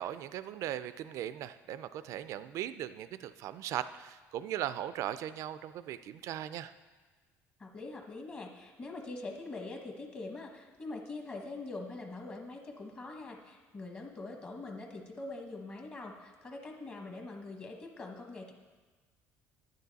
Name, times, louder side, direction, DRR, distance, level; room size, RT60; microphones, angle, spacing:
voice 1, 0.0-6.7, right 11 dB, 65° right, 13 dB, 0.4 m, -38 dB
voice 2, 7.6-18.5, left 2 dB, 30° left, 2 dB, 1.1 m, -43 dB
11.0 x 9.2 x 4.1 m, 1.3 s
cardioid pair, 130°, 6 cm